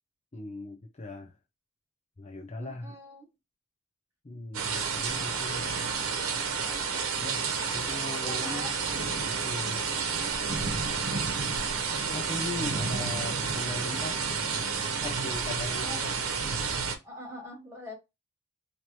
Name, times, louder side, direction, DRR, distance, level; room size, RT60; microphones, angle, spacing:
voice 1, 0.3-1.3 2.2-3.0 4.2-5.6 7.2-7.5 7.7-8.7 9.4-9.8 12.1-14.2 15.0-16.1, left 2 dB, 30° left, 0.6 m, -38 dB
voice 2, 2.6-3.3 8.1-8.8 10.0-10.4 15.7-16.0 17.0-17.9, left 1 dB, 10° right, 1.5 m, -43 dB
sound 1, 4.5-17.0, right 5 dB, 75° right, 0.9 m, -30 dB
4.3 x 2.9 x 3.0 m
head